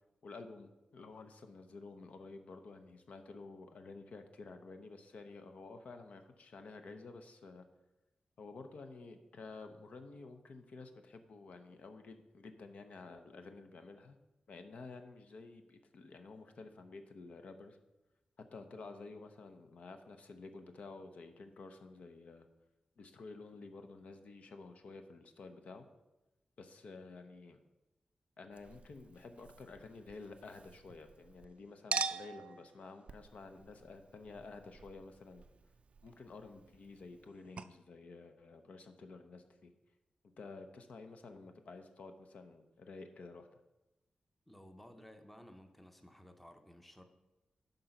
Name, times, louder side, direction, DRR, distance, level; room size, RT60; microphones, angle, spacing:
voice 1, 0.2-7.6 8.4-14.2 14.5-17.8 18.4-22.5 23.0-25.9 26.6-27.6 28.4-35.4 36.0-39.7 40.4-43.6, left 3 dB, 60° left, 7 dB, 0.7 m, -51 dB
Chink clink, 28.5-31.5 31.9-37.3 37.6-37.7, right 5 dB, 50° right, 0.4 m, -45 dB
voice 2, 44.5-47.0, left 1 dB, 5° left, 6 dB, 0.7 m, -56 dB
10.5 x 3.9 x 5.8 m, 0.99 s
wide cardioid pair, 140°, 3 cm